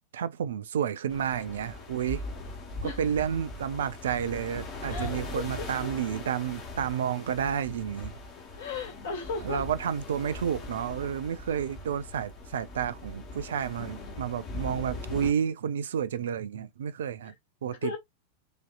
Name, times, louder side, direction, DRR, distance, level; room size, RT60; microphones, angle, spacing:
voice 1, 0.1-2.2 2.8-8.1 9.4-17.3 17.6-17.9, right 8 dB, 60° right, 0.3 m, -31 dB
sound 1, 1.1-15.3, left 2 dB, 40° left, 1.3 m, -40 dB
voice 2, 4.9-5.7 8.5-9.6 17.2-17.3 17.8-18.0, left 4 dB, 60° left, 1.5 m, -35 dB
4.9 x 2.7 x 2.4 m
figure-of-eight pair, 90°, 0 cm